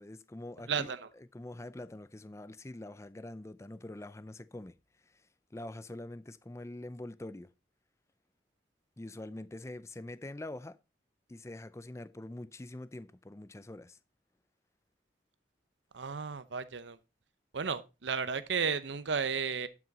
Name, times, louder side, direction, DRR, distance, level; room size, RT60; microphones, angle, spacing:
voice 1, 0.0-0.9 1.1-4.7 5.1-5.2 5.5-7.5 9.0-10.8 11.3-14.0, left 1 dB, 15° left, 0.4 m, -44 dB
voice 2, 0.7-1.1 15.9-17.0 17.5-19.7, right 6 dB, 75° right, 0.8 m, -33 dB
12.0 x 6.1 x 3.9 m
head